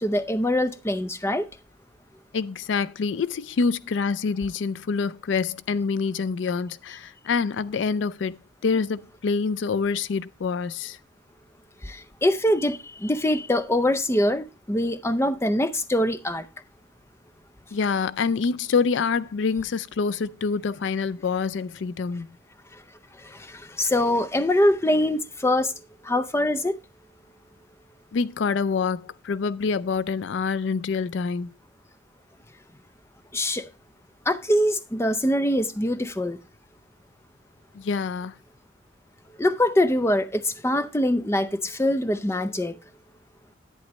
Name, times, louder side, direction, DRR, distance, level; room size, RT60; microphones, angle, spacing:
voice 1, 0.0-1.5 11.8-16.5 23.2-25.7 26.0-26.8 33.3-33.7 34.3-36.4 39.4-42.8, left 1 dB, 15° left, 0.6 m, -23 dB
voice 2, 2.3-11.0 17.7-22.3 28.1-31.5 37.7-38.3, left 5 dB, 70° left, 0.4 m, -26 dB
11.0 x 9.2 x 3.1 m
head